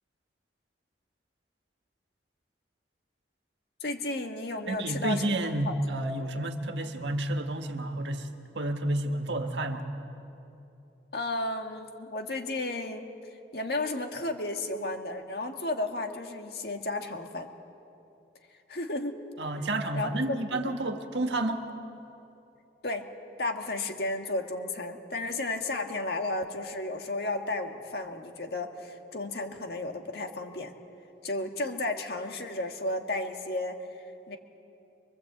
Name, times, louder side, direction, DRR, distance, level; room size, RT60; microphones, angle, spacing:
voice 1, 3.8-5.8 6.3-6.4 6.8-6.9 11.1-13.1 13.5-17.5 18.7-19.2 19.9-20.4 20.7-20.8 22.8-23.1 23.4-30.7 31.2-34.4, left 2 dB, 60° left, 4 dB, 1.8 m, -33 dB
voice 2, 4.7-9.9 19.4-21.6, right 1 dB, 80° right, 5 dB, 1.7 m, -30 dB
24.5 x 24.0 x 8.1 m, 2.8 s
head